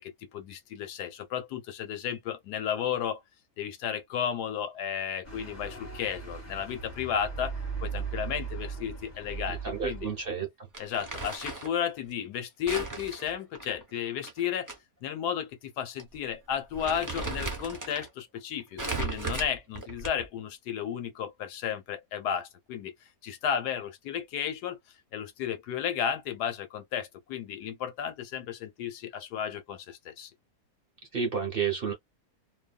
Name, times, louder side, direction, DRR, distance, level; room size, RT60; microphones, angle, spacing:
voice 1, 0.0-3.2 3.6-10.1 10.8-14.7 15.0-22.9 23.2-24.8 25.1-30.3, left 8 dB, 85° left, 1.3 m, -33 dB
sound 1, 5.2-10.3, right 5 dB, 30° left, 1.2 m, -38 dB
voice 2, 9.5-10.5 31.1-31.9, right 6 dB, 45° right, 0.8 m, -30 dB
Crumpling crinkling, 10.7-11.8 12.7-14.8 15.1-15.2 16.0-16.2 16.5-18.1 18.8-20.4, right 3 dB, 20° right, 0.5 m, -36 dB
2.7 x 2.3 x 2.2 m
omnidirectional pair, 1.7 m